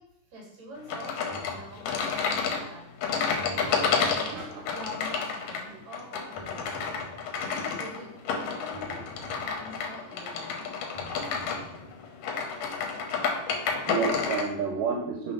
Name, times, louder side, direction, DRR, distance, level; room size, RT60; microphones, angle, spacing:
voice 1, 0.0-4.3 4.7-6.9 7.4-10.6, left 1 dB, 60° right, -3 dB, 3.4 m, -46 dB
sound 1, 0.9-14.5, left 5 dB, 85° left, 2.6 m, -30 dB
sound 2, 1.3-2.3 3.4-5.0 6.4-7.8 8.7-10.2 10.9-12.3, equal, 40° left, 0.6 m, -48 dB
voice 2, 4.2-4.6 13.9-15.3, right 6 dB, 85° right, 1 dB, 2.3 m, -30 dB
7.1 x 3.6 x 5.2 m, 0.81 s
omnidirectional pair, 3.7 m